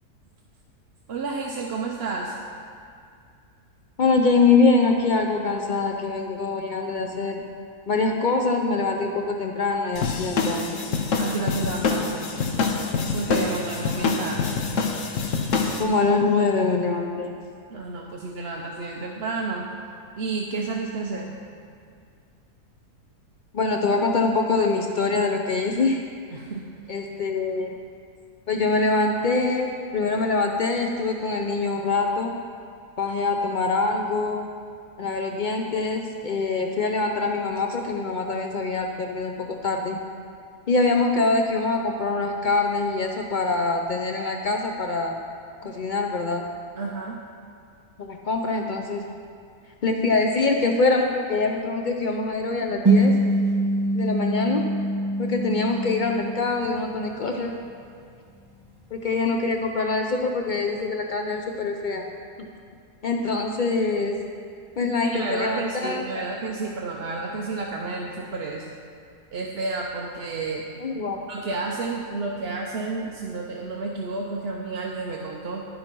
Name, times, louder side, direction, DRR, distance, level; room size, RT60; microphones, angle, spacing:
voice 1, 1.1-2.3 11.2-12.3 13.1-14.6 17.7-19.7 20.2-21.3 26.3-26.7 46.8-47.2 65.0-68.7 69.3-70.7 71.3-75.7, right 3 dB, 50° right, -1 dB, 0.8 m, -31 dB
voice 2, 4.0-7.4 7.9-10.8 15.8-17.3 23.5-26.0 26.9-27.8 28.5-32.3 33.0-34.5 35.0-40.0 40.7-45.2 45.6-46.4 48.0-49.0 49.8-53.2 53.9-54.7 55.2-57.5 58.9-62.0 62.4-62.5 63.0-64.2 64.8-66.2 70.8-71.2, left 3 dB, 80° left, 3 dB, 0.4 m, -24 dB
sound 1, 10.0-15.8, left 4 dB, 60° left, 1.1 m, -26 dB
sound 2, 52.8-57.5, right 1 dB, 15° right, 1.2 m, -24 dB
11.0 x 10.5 x 4.5 m, 2.3 s
omnidirectional pair, 1.7 m